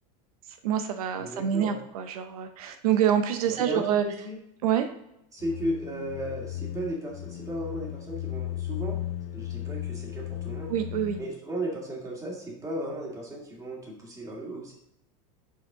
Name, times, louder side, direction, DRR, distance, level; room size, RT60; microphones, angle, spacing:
voice 1, 0.6-4.0 4.6-4.9 10.7-11.2, right 9 dB, 90° right, 8 dB, 0.7 m, -26 dB
voice 2, 1.2-1.8 3.5-4.4 5.3-9.0 9.3-10.7 11.2-14.7, right 1 dB, 20° right, -2 dB, 2.2 m, -35 dB
sound 1, 5.4-11.4, left 13 dB, 60° left, 0.7 m, -36 dB
7.3 x 4.7 x 3.6 m, 0.81 s
supercardioid pair, 135°, 18 cm